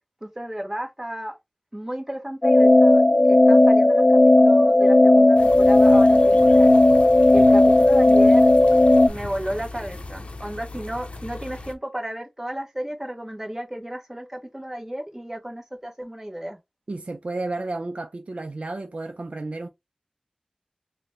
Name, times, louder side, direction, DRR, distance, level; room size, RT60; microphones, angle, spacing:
voice 1, 0.2-1.4 1.7-3.0 3.3-6.7 7.3-8.5 9.1-16.6, right 1 dB, 20° right, 1.0 m, -33 dB
sound 1, 2.4-9.1, left 2 dB, 30° left, 0.3 m, -14 dB
sound 2, 5.4-11.8, left 2 dB, 70° left, 0.6 m, -38 dB
voice 2, 16.9-19.7, right 2 dB, 70° right, 0.4 m, -32 dB
4.0 x 2.1 x 3.1 m
wide cardioid pair, 50°, 2 cm